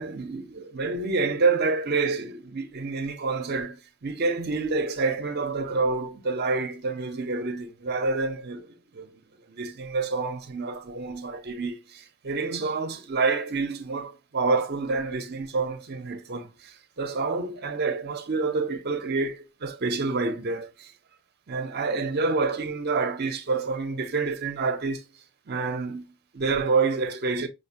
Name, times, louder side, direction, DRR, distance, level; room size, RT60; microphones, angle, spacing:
voice 1, 0.0-9.1 9.5-20.9 21.5-25.0 25.5-27.5, right 4 dB, 45° right, 0.6 m, -28 dB
4.9 x 2.1 x 2.6 m
head